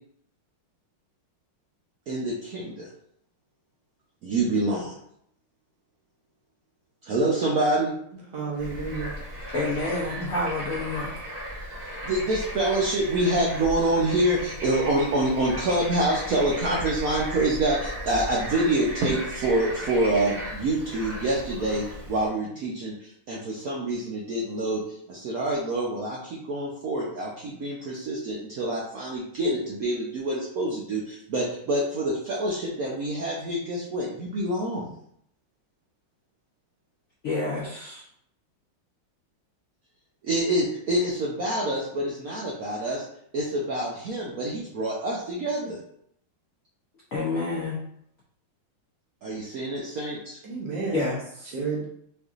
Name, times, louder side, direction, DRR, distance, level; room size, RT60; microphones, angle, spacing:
voice 1, 2.1-2.9 4.2-5.0 7.0-7.9 12.0-34.9 40.2-43.1 43.3-45.8 49.2-50.4, right 1 dB, 85° right, -4 dB, 0.7 m, -26 dB
voice 2, 8.3-9.2 50.4-51.1 51.5-51.8, right 4 dB, 60° right, -3 dB, 1.4 m, -31 dB
Bird / Frog, 8.5-22.3, equal, 30° right, 0.7 m, -36 dB
voice 3, 9.5-11.1 37.2-38.0 47.1-47.8 50.9-51.5, left 3 dB, 80° left, -4 dB, 0.7 m, -29 dB
4.6 x 2.6 x 2.4 m, 0.69 s
omnidirectional pair, 2.3 m